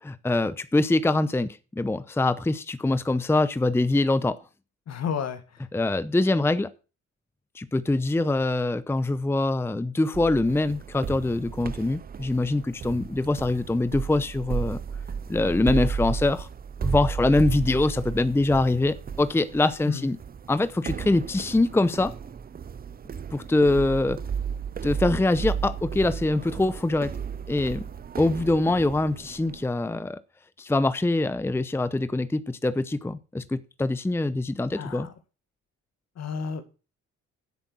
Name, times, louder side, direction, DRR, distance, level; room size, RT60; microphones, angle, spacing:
voice 1, 0.0-4.4 5.7-6.7 7.5-14.8 15.3-16.5 16.8-20.2 20.5-22.1 23.3-24.2 24.8-27.1 27.5-27.8 28.2-30.2 30.6-35.1, left 2 dB, 10° left, 15 dB, 0.7 m, -24 dB
voice 2, 4.9-5.4 19.9-20.1 34.8-35.1 36.2-36.7, left 6 dB, 60° left, 10 dB, 2.0 m, -31 dB
sound 1, 10.1-29.7, right 6 dB, 30° right, 0.5 m, -34 dB
10.5 x 7.9 x 6.2 m, 0.33 s
cardioid pair, 90°, 30 cm